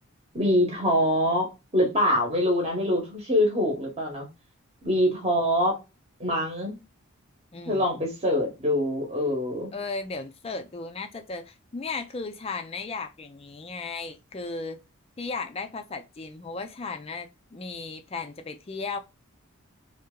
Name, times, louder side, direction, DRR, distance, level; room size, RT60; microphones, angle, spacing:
voice 1, 0.3-4.3 4.8-5.8 6.2-6.7 7.7-9.7, left 1 dB, 30° right, 1.0 m, -24 dB
voice 2, 7.5-7.8 9.7-14.8 15.2-19.0, left 4 dB, 25° left, 0.4 m, -35 dB
3.2 x 2.8 x 3.6 m
head